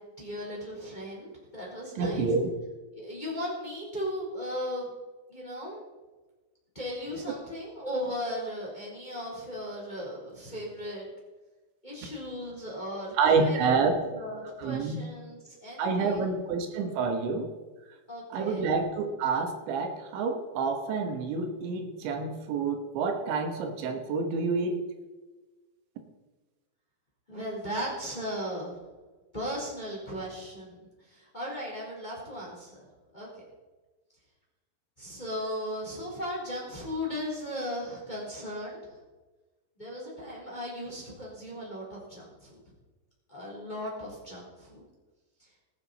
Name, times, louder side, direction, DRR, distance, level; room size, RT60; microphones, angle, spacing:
voice 1, 0.0-2.3 2.9-4.9 5.3-5.8 6.7-11.0 11.8-16.2 18.1-18.7 27.3-28.8 29.3-32.9 33.1-33.4 35.0-39.0 39.8-42.7 43.3-44.8 45.4-45.5, equal, 10° left, -3 dB, 3.2 m, -37 dB
voice 2, 2.0-2.5 13.2-13.9 14.6-15.0 15.8-17.5 18.3-24.8, right 4 dB, 80° right, 4 dB, 3.6 m, -28 dB
20.0 x 9.4 x 4.1 m, 1.2 s
omnidirectional pair, 5.2 m